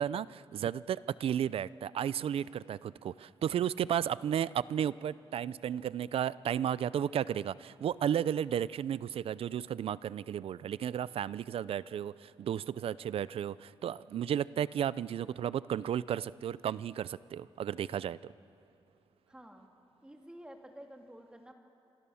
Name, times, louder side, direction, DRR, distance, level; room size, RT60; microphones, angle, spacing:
voice 1, 0.0-18.2, right 9 dB, 75° right, 19 dB, 0.5 m, -33 dB
voice 2, 19.3-19.7 20.0-21.5, equal, 10° right, 3 dB, 2.4 m, -52 dB
27.0 x 25.5 x 7.1 m, 2.6 s
wide cardioid pair, 125°, 10 cm